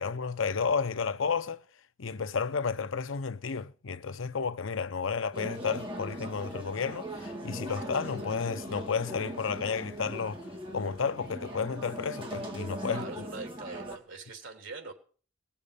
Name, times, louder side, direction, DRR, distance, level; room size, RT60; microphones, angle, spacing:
voice 1, 0.0-1.6 2.0-10.4 10.7-13.0, left 5 dB, 90° left, 0.7 m, -32 dB
sound 1, 5.3-14.0, right 1 dB, 25° right, 2.5 m, -40 dB
voice 2, 12.9-14.9, right 3 dB, 80° right, 3.2 m, -42 dB
19.0 x 7.0 x 8.3 m
head